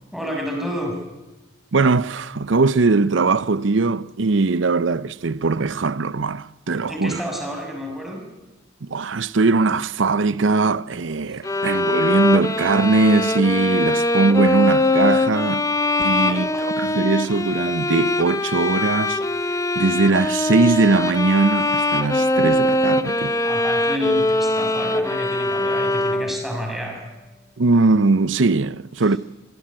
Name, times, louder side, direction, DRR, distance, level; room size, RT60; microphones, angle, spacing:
voice 1, 0.1-0.9 6.8-8.2 16.0-16.7 23.4-27.1, equal, ahead, 6.1 m, -30 dB
voice 2, 1.7-7.2 8.8-15.6 16.0-19.2 19.8-23.3 27.6-29.2, right 3 dB, 75° right, 0.7 m, -20 dB
sound 1, 11.4-26.6, left 1 dB, 15° left, 0.8 m, -22 dB
26.5 x 16.5 x 8.8 m
head